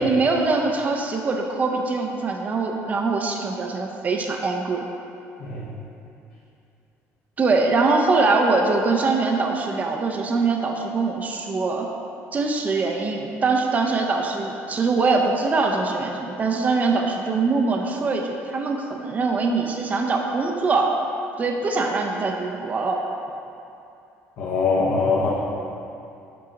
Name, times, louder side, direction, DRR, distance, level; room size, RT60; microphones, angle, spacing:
voice 1, 0.0-4.8 7.4-11.9 12.3-21.0 21.4-23.0, right 3 dB, 30° right, 2 dB, 0.5 m, -23 dB
voice 2, 24.4-25.3, left 4 dB, 60° left, -6 dB, 1.0 m, -22 dB
6.8 x 4.7 x 3.8 m, 2.7 s
cardioid pair, 115°, 5 cm